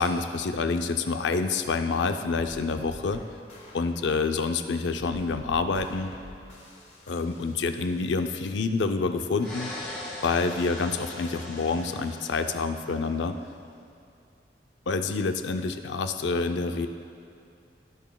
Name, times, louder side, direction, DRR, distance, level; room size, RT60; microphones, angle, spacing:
voice 1, 0.0-3.2 3.7-6.1 7.1-9.7 10.2-13.4 14.9-16.9, left 4 dB, 80° left, 7 dB, 0.5 m, -27 dB
sound 1, 2.4-8.3, left 1 dB, 35° left, 1.2 m, -48 dB
sound 2, 9.4-13.3, left 1 dB, 10° left, 2.0 m, -40 dB
15.0 x 6.2 x 2.3 m, 2.6 s
head